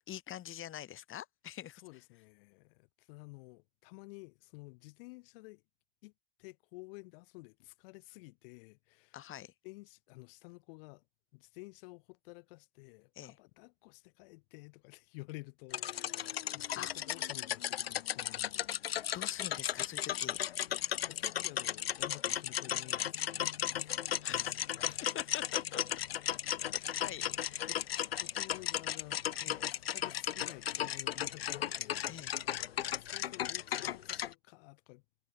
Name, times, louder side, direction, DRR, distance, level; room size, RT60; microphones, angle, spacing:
voice 1, 0.0-1.8 9.1-9.5 13.2-13.3 16.8-16.9 19.1-20.4 24.2-25.8 26.6-27.7 29.4-29.6 32.1-32.3, left 12 dB, 45° left, 3.6 m, -45 dB
voice 2, 1.8-5.6 6.0-6.1 6.4-9.2 9.6-11.0 11.3-19.2 20.7-24.0 24.2-25.0 26.7-29.3 29.9-32.0 32.8-35.0, left 26 dB, 70° left, 3.4 m, -52 dB
sound 1, 15.7-34.3, left 11 dB, 90° left, 1.1 m, -35 dB
hypercardioid pair, 80°, 29 cm